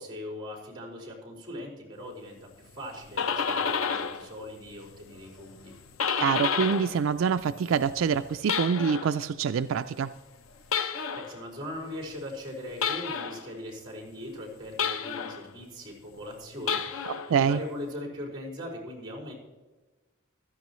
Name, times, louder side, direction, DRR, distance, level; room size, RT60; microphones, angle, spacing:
voice 1, 0.0-5.7 11.1-19.3, left 1 dB, 25° right, 0 dB, 4.8 m, -40 dB
sound 1, 2.8-4.3 4.6-7.0 7.3-9.2 10.6-11.4 12.8-13.5 14.8-15.5 16.6-17.3, left 6 dB, 90° left, 0.7 m, -30 dB
voice 2, 6.2-10.1 17.3-17.6, right 6 dB, 70° right, 11 dB, 0.3 m, -25 dB
16.0 x 13.0 x 3.1 m, 1.2 s
head